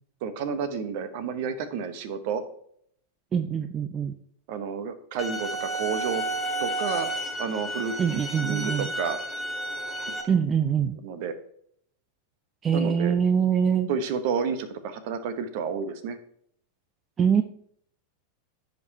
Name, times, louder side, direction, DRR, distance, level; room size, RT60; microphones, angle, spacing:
voice 1, 0.2-2.4 4.5-6.2 6.6-7.1 7.4-9.2 11.0-11.3 12.7-13.2 13.9-16.2, right 6 dB, 50° right, 12 dB, 1.0 m, -30 dB
voice 2, 3.3-4.1 8.0-8.9 10.3-11.0 12.6-13.9 17.2-17.4, right 7 dB, 25° right, 9 dB, 0.5 m, -24 dB
sound 1, 5.2-10.2, right 1 dB, 5° left, 1.6 m, -31 dB
15.0 x 5.3 x 2.8 m, 0.66 s
figure-of-eight pair, 90°, 0 cm